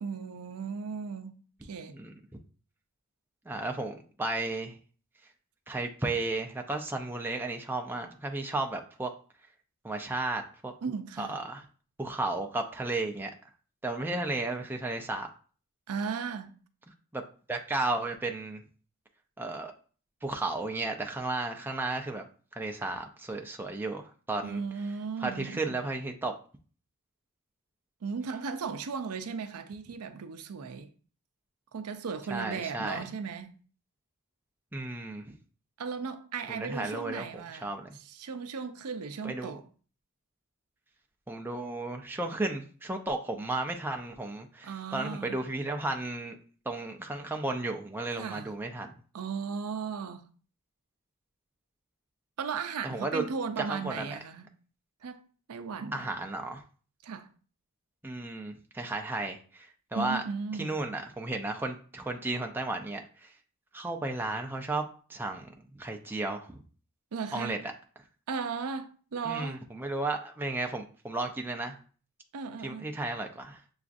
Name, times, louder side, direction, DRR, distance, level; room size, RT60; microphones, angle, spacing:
voice 1, 0.0-2.0 10.8-11.4 15.9-16.6 24.4-25.9 28.0-30.9 31.7-33.6 35.8-39.6 44.6-45.4 48.1-48.5 49.1-50.3 52.4-54.5 55.0-56.1 57.0-57.3 59.9-60.7 67.1-67.7 68.3-69.6 72.3-73.0, right 5 dB, 75° right, 0.5 m, -36 dB
voice 2, 3.5-4.8 5.7-9.1 9.8-10.7 11.2-11.6 12.0-13.3 13.8-15.3 17.1-17.2 17.5-18.6 19.4-19.7 20.2-22.2 22.6-24.6 25.2-26.3 32.3-33.0 34.7-35.3 36.5-37.9 39.2-39.6 41.3-46.4 46.7-48.9 52.8-53.2 53.6-54.2 55.9-56.6 58.0-60.2 60.6-63.3 63.7-66.6 67.3-67.7 69.2-71.8 72.6-73.6, right 2 dB, 10° right, 0.4 m, -34 dB
6.8 x 2.4 x 2.5 m
head